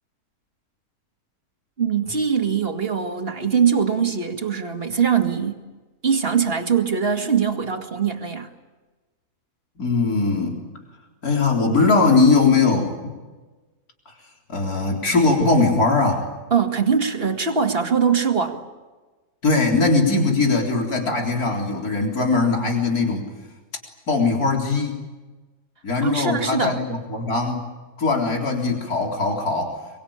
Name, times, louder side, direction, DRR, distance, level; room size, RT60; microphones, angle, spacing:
voice 1, 1.8-5.6 6.0-8.5 16.5-18.6 26.0-26.8, right 6 dB, 40° right, 5 dB, 2.3 m, -22 dB
voice 2, 9.8-10.6 11.2-12.9 14.5-16.2 19.4-23.3 24.1-25.0 25.8-27.7 28.0-29.8, left 3 dB, 70° left, 1 dB, 4.4 m, -20 dB
25.5 x 24.0 x 8.8 m, 1.2 s
omnidirectional pair, 1.6 m